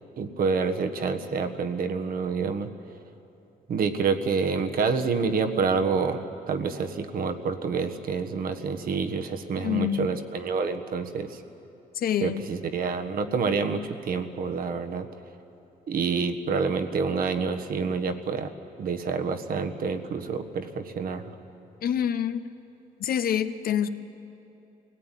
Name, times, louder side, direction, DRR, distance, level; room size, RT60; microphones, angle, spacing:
voice 1, 0.2-2.7 3.7-11.4 12.2-15.1 15.9-18.5 18.8-21.3, right 5 dB, 70° right, 7 dB, 1.5 m, -28 dB
voice 2, 9.6-10.2 11.9-12.5 21.8-22.4 23.0-23.9, left 9 dB, 70° left, 10 dB, 1.0 m, -27 dB
23.5 x 17.0 x 9.2 m, 2.9 s
cardioid pair, 95°, 16 cm